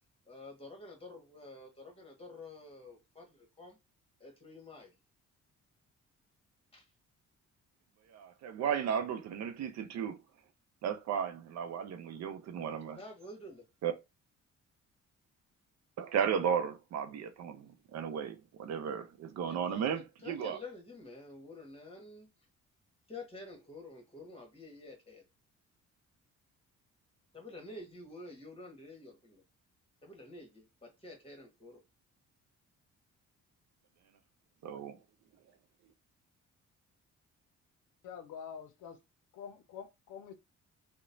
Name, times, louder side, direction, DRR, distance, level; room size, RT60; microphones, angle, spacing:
voice 1, 0.3-3.8 4.2-4.9 6.7-6.9 13.0-13.6 19.4-22.3 23.1-25.2 27.3-29.4 30.0-31.8, left 2 dB, 20° left, 1.2 m, -49 dB
voice 2, 8.1-10.2 10.8-13.0 13.8-13.9 16.0-20.6 34.6-35.0, right 8 dB, 60° right, 0.5 m, -35 dB
voice 3, 38.0-39.0 39.3-40.3, left 7 dB, 80° left, 0.6 m, -46 dB
2.9 x 2.1 x 2.6 m
cardioid pair, 90°, 30 cm